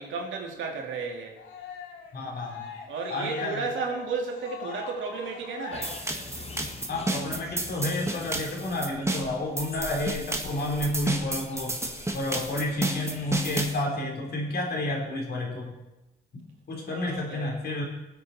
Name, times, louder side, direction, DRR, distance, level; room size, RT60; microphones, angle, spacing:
voice 1, 0.0-1.3 2.9-5.9 16.9-17.6, right 4 dB, 75° right, 1 dB, 2.5 m, -33 dB
Cheering, 1.4-6.8, left 6 dB, 80° left, 2.2 m, -42 dB
voice 2, 2.1-2.7 3.1-3.7 6.9-11.8 12.1-15.7 16.7-17.8, left 1 dB, 55° left, 0 dB, 3.7 m, -30 dB
sound 1, 5.7-13.7, left 4 dB, 30° left, 0.9 m, -45 dB
sound 2, 5.8-13.8, right 2 dB, 15° right, 1.4 m, -32 dB
18.5 x 8.0 x 4.3 m, 0.99 s
cardioid pair, 90°, 20 cm